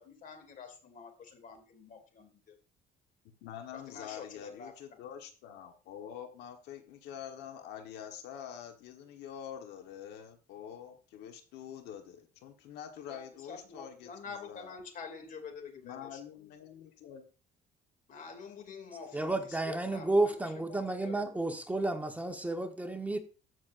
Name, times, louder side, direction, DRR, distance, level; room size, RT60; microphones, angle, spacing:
voice 1, 0.0-2.6 3.7-5.0 13.1-16.5 18.1-21.4, left 5 dB, 50° left, 2.7 m, -47 dB
voice 2, 3.4-14.7 15.8-17.3, left 9 dB, 85° left, 1.3 m, -46 dB
voice 3, 19.1-23.2, right 2 dB, 10° right, 1.2 m, -31 dB
14.0 x 6.3 x 2.6 m
cardioid pair, 110°, 17 cm